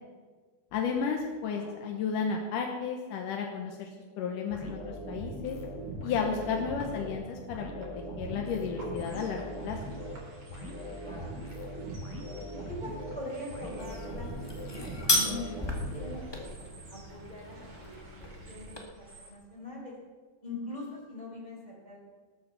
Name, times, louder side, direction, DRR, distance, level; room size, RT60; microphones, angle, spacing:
voice 1, 0.7-3.9 4.2-5.6 6.0-7.7 7.9-9.8, left 6 dB, 70° left, 1 dB, 2.6 m, -33 dB
sound 1, 4.5-16.7, right 1 dB, 55° left, 3.0 m, -40 dB
sound 2, 5.4-19.3, equal, 40° right, 4.3 m, -52 dB
voice 2, 11.0-11.4 12.7-16.5 16.9-18.0 18.5-19.9 20.4-22.0, left 1 dB, 10° left, -4 dB, 5.2 m, -42 dB
sound 3, 13.8-18.8, left 1 dB, 35° left, 0.4 m, -34 dB
18.5 x 8.6 x 7.0 m, 1.4 s
omnidirectional pair, 4.0 m